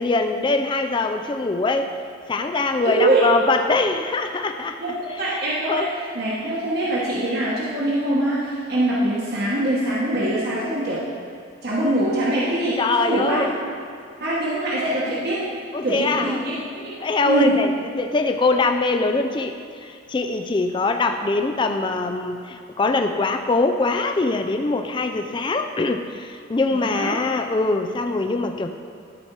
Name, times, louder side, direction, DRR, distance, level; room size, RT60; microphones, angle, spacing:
voice 1, 0.0-1.9 2.3-4.8 5.7-5.9 12.8-13.6 15.7-16.4 17.0-17.7 18.0-28.7, left 3 dB, 25° left, 5 dB, 0.3 m, -23 dB
voice 2, 2.6-3.3 4.8-11.0 11.6-13.4 14.2-15.5 15.8-16.9 17.2-17.6 26.7-27.2, right 1 dB, 50° right, -7 dB, 1.1 m, -23 dB
12.5 x 4.3 x 4.6 m, 2.3 s
head